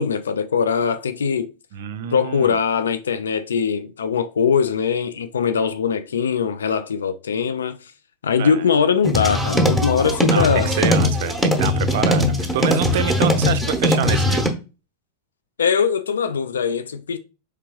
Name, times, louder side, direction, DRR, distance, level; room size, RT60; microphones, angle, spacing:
voice 1, 0.0-1.5 2.1-7.9 8.2-10.7 15.6-17.2, left 6 dB, 70° left, 0.4 m, -21 dB
voice 2, 1.7-2.5 8.4-8.6 10.3-14.5, right 10 dB, 55° right, 0.4 m, -26 dB
sound 1, 9.0-14.5, left 1 dB, 5° left, 0.9 m, -20 dB
4.7 x 3.4 x 3.0 m
figure-of-eight pair, 90°, 0 cm